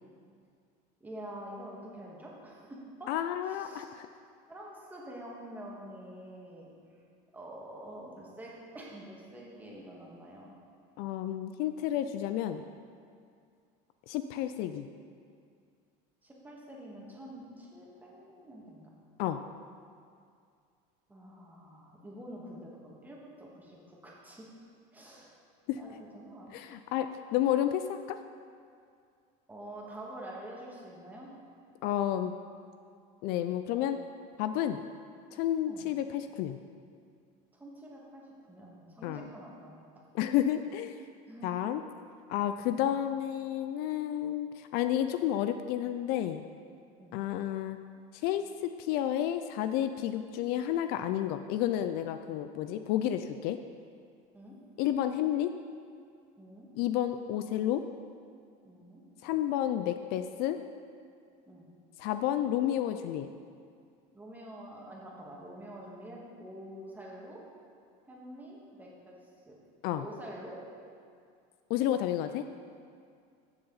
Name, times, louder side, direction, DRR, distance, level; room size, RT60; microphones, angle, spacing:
voice 1, 1.0-3.1 3.4-3.9 4.5-7.0 7.3-10.5 16.2-18.9 21.1-24.5 24.9-25.3 25.8-26.5 29.5-31.3 35.7-35.8 37.5-38.2 38.5-39.8 41.3-41.5 42.6-42.8 47.0-47.2 54.3-54.6 56.4-56.7 58.6-59.0 61.5-61.7 64.1-67.4 68.1-69.2 69.5-69.6 70.0-70.6, right 1 dB, 10° right, -3 dB, 1.7 m, -47 dB
voice 2, 3.1-4.1 11.0-12.6 14.1-14.9 19.2-19.4 25.7-25.8 26.5-28.2 31.8-32.4 33.2-34.0 34.4-34.8 35.3-36.6 39.0-39.3 40.1-41.0 41.4-41.8 42.3-46.4 47.1-47.8 48.1-53.6 54.8-55.5 56.8-57.8 59.2-60.6 62.0-63.3 69.8-70.0 71.7-72.4, left 11 dB, 60° left, 9 dB, 0.4 m, -31 dB
14.5 x 6.8 x 4.0 m, 2.3 s
cardioid pair, 150°, 19 cm